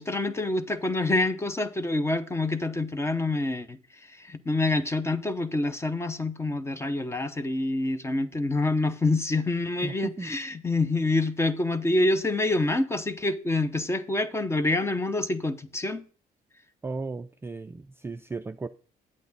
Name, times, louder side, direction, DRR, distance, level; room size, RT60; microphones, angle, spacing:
voice 1, 0.0-3.8 4.1-16.0, left 2 dB, 15° left, 0.7 m, -27 dB
voice 2, 9.8-10.4 16.8-18.7, right 3 dB, 15° right, 0.3 m, -35 dB
8.5 x 8.4 x 4.0 m
cardioid pair, 110°, 17 cm